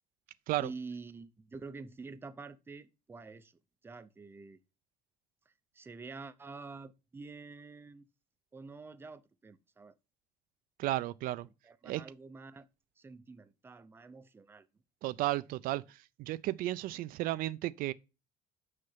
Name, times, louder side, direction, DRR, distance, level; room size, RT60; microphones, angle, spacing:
voice 1, 0.6-4.6 5.7-8.1 8.5-10.0 11.4-12.7 13.0-14.7, right 4 dB, 15° right, 0.5 m, -47 dB
voice 2, 10.8-11.5 11.8-12.0 15.0-17.9, right 16 dB, 75° right, 0.5 m, -34 dB
6.4 x 5.8 x 5.6 m
cardioid pair, 155°, 15 cm